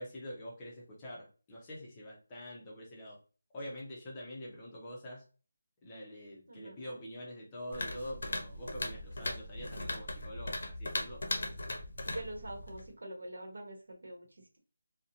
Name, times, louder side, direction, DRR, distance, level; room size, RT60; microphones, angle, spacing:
voice 1, 0.0-3.2 3.5-5.3 5.8-11.2, equal, 10° left, -4 dB, 0.5 m, -45 dB
voice 2, 6.5-7.0 12.0-14.3, right 1 dB, 70° right, 2 dB, 1.0 m, -44 dB
sound 1, 7.7-12.9, left 1 dB, 60° left, 0.6 m, -39 dB
2.5 x 2.1 x 2.7 m, 0.36 s
figure-of-eight pair, 175°, 0 cm